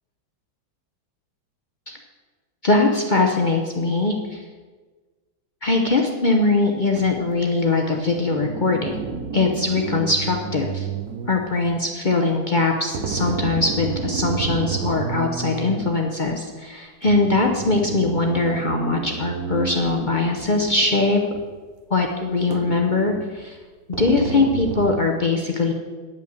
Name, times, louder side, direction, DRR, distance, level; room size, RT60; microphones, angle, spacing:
voice 1, 2.6-4.4 5.6-9.0 9.3-10.9 11.3-21.2 21.9-23.6 24.0-25.7, left 3 dB, 70° left, 2 dB, 0.4 m, -21 dB
sound 1, 6.9-7.2 7.9-11.8 12.9-16.0 17.0-21.0 21.3-21.4 22.5-23.4 23.9-24.9, right 6 dB, 65° right, 1.0 m, -30 dB
10.0 x 5.7 x 7.9 m, 1.4 s
omnidirectional pair, 2.1 m